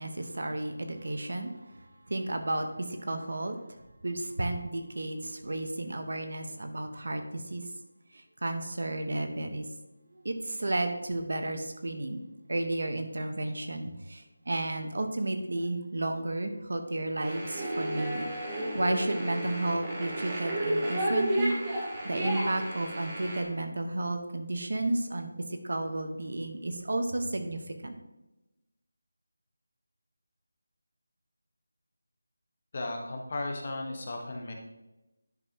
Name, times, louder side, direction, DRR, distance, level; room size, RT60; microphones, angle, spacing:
voice 1, 0.0-1.5 2.1-3.6 4.0-7.6 8.4-9.6 10.2-21.5 22.0-25.3 25.6-28.0, right 2 dB, 55° right, 6 dB, 1.1 m, -32 dB
sound 1, 17.2-23.4, right 1 dB, 10° right, 1.2 m, -32 dB
voice 2, 32.7-34.5, left 2 dB, 30° left, 2 dB, 1.0 m, -35 dB
10.5 x 6.6 x 2.9 m, 0.99 s
figure-of-eight pair, 180°, 0 cm